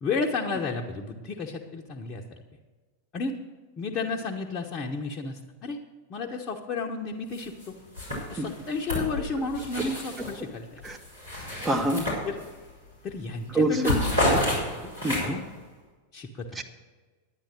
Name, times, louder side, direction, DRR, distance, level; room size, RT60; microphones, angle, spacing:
voice 1, 0.0-2.2 3.1-3.4 3.8-5.8 6.1-7.7 8.3-10.8 12.2-12.4 13.0-14.4 14.8-15.4 16.1-16.6, left 4 dB, 30° left, -1 dB, 1.0 m, -32 dB
sound 1, 7.3-7.7 7.9-10.4 10.8-12.7 13.1-13.3 13.6-15.5, left 1 dB, 90° right, 4.9 m, -30 dB
voice 2, 11.6-12.0 13.5-14.0 15.0-15.3 16.5-16.6, right 1 dB, 10° right, 3 dB, 1.1 m, -25 dB
10.5 x 9.8 x 6.2 m, 1.4 s
figure-of-eight pair, 90°, 0 cm